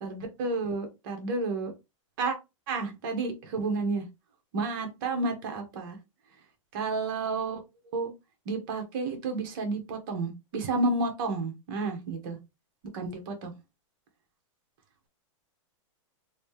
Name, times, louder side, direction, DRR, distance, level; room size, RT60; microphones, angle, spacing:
voice 1, 0.0-1.7 2.2-2.4 2.7-4.0 4.5-6.0 6.7-7.6 7.9-8.1 8.5-12.4 12.9-13.5, right 3 dB, 40° right, 4 dB, 1.2 m, -31 dB
3.1 x 2.8 x 3.2 m, 0.24 s
supercardioid pair, 165°, 17 cm